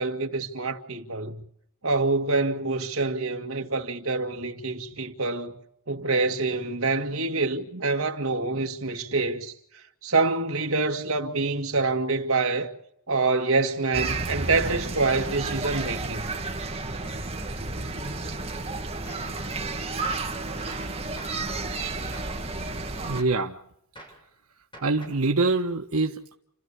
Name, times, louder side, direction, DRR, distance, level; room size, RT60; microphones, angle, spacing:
voice 1, 0.0-1.4 1.8-5.6 5.9-9.5 10.0-12.7 13.1-16.3, right 3 dB, 70° right, 2.3 m, -26 dB
sound 1, 13.9-23.2, right 3 dB, 30° right, 2.4 m, -31 dB
Gunshot gunfire, 19.1-19.4 20.0-20.3 20.7-21.5 22.1-22.4 23.1-23.5 24.0-24.3 24.7-25.3, right 1 dB, 20° left, 7.2 m, -47 dB
voice 2, 23.0-23.5 24.8-26.3, right 3 dB, 90° right, 1.4 m, -25 dB
30.0 x 14.0 x 7.1 m
head